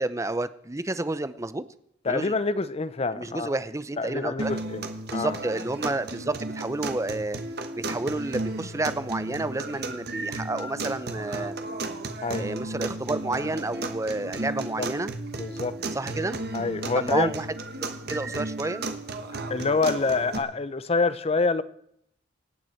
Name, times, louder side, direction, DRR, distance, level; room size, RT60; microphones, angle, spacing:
voice 1, 0.0-1.6 2.0-2.3 3.1-4.5 5.1-7.4 7.8-11.6 12.4-15.1 15.9-16.4 16.9-17.5 17.8-18.9, right 2 dB, 15° right, 0.6 m, -30 dB
voice 2, 2.1-3.6 4.0-4.9 5.1-5.4 12.2-12.5 14.8-14.9 15.3-15.7 16.5-17.3 19.5-21.6, left 3 dB, 35° left, 0.5 m, -26 dB
sound 1, 4.4-20.4, right 2 dB, 55° right, 1.3 m, -34 dB
25.0 x 9.2 x 4.4 m
head